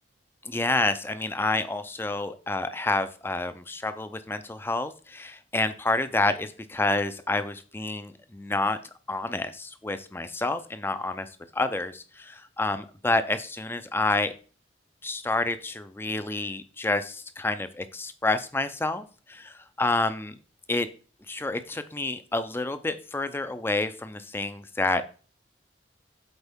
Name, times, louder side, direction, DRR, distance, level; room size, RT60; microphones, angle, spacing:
voice 1, 0.4-8.8 9.1-11.3 11.5-14.3 15.0-20.3 20.7-20.9 21.3-25.0, left 2 dB, 10° left, 11 dB, 0.4 m, -28 dB
8.1 x 4.4 x 3.5 m, 0.38 s
head